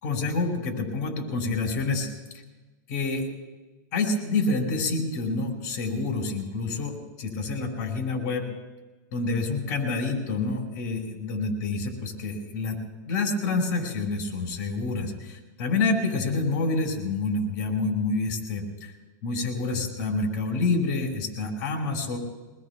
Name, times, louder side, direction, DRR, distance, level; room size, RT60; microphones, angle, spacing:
voice 1, 0.0-2.1 2.9-3.3 3.9-8.5 9.1-12.8 13.1-18.9 19.2-22.2, left 3 dB, 55° left, 0 dB, 4.9 m, -28 dB
24.5 x 20.0 x 2.3 m, 1.2 s
supercardioid pair, 165°, 11 cm